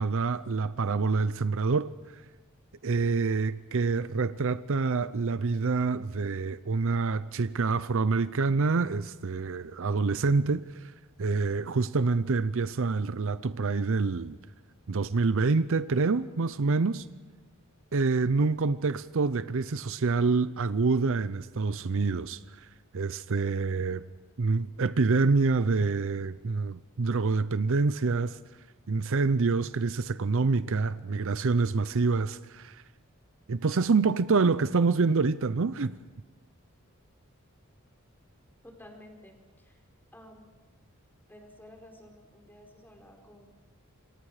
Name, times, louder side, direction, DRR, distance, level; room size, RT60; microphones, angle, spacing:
voice 1, 0.0-1.9 2.8-10.9 11.2-14.4 14.9-17.1 17.9-22.4 22.9-24.0 24.4-28.4 28.9-32.8 33.5-35.9, right 4 dB, 65° right, 0.6 m, -26 dB
voice 2, 38.6-39.8 40.1-40.5 41.3-43.5, left 1 dB, 10° left, 4.6 m, -52 dB
29.0 x 25.0 x 4.9 m
head